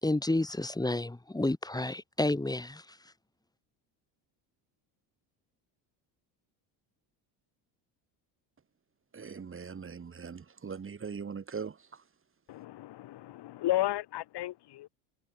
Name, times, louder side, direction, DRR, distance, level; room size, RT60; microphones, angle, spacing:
voice 1, 0.0-3.0, left 2 dB, 10° left, 4.7 m, -30 dB
voice 2, 9.1-11.8, right 6 dB, 30° right, 3.9 m, -40 dB
voice 3, 12.5-14.9, left 15 dB, 60° left, 2.9 m, -33 dB
cardioid pair, 110°, 45 cm